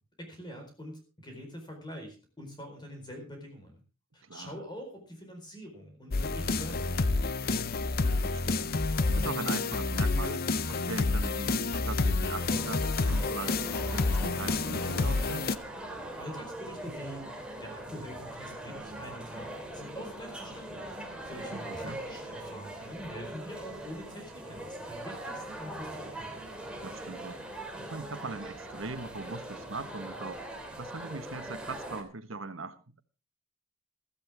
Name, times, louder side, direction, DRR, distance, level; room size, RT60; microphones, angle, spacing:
voice 1, 0.2-3.8 4.1-7.7 16.2-17.2 17.6-21.0 21.2-26.3, equal, 20° left, 4.4 m, -45 dB
voice 2, 4.2-4.6 8.0-15.5 16.9-17.0 21.5-22.0 26.8-33.0, right 3 dB, 75° right, 1.4 m, -41 dB
sound 1, 6.1-15.6, left 3 dB, 50° left, 0.7 m, -29 dB
sound 2, 12.4-32.0, right 1 dB, 5° right, 2.9 m, -42 dB
16.0 x 14.0 x 3.5 m
head